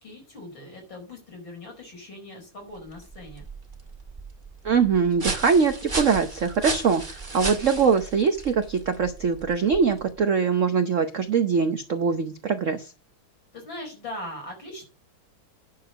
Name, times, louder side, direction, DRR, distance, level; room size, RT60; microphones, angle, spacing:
voice 1, 0.0-3.5 13.5-14.9, left 1 dB, 55° left, 2 dB, 5.6 m, -40 dB
sound 1, 2.8-10.2, right 3 dB, 25° right, 1.8 m, -35 dB
voice 2, 4.6-12.9, right 5 dB, 55° right, 8 dB, 0.8 m, -22 dB
10.0 x 6.8 x 6.6 m, 0.35 s
omnidirectional pair, 2.4 m